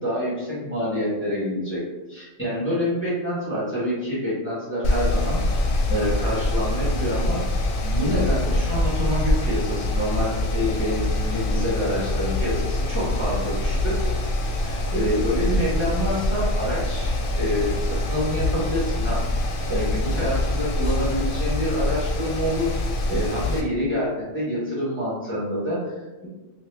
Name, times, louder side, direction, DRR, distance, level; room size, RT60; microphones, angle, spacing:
voice 1, 0.0-1.8 2.1-5.4 5.9-7.4 7.8-14.0 14.6-22.7 23.1-26.3, equal, 10° left, -9 dB, 1.1 m, -27 dB
Mechanical fan, 4.8-23.6, left 1 dB, 60° left, 0.6 m, -24 dB
2.9 x 2.6 x 3.2 m, 1.1 s
omnidirectional pair, 1.3 m